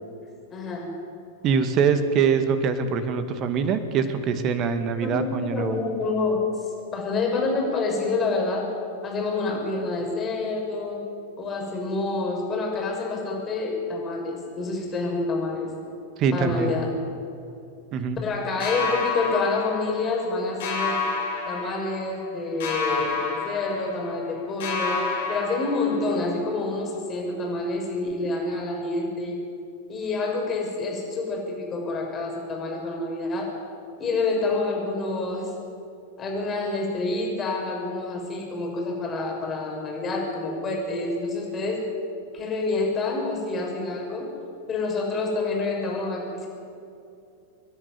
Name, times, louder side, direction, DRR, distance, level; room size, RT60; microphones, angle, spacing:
voice 1, 0.5-1.0 5.0-6.4 6.9-8.7 9.0-11.0 11.4-15.7 16.3-16.9 18.2-21.0 21.5-29.4 29.9-33.6 34.0-35.5 36.2-41.9 42.3-44.3 44.7-46.5, left 3 dB, 25° left, 0 dB, 6.3 m, -28 dB
voice 2, 1.4-5.8 16.2-16.7 17.9-18.2, right 6 dB, 35° right, 10 dB, 1.9 m, -23 dB
sound 1, 18.6-20.3 20.6-22.3 22.6-24.3 24.6-26.3, left 4 dB, 55° left, 5.2 m, -29 dB
27.5 x 11.0 x 9.5 m, 2.5 s
figure-of-eight pair, 95°, 0 cm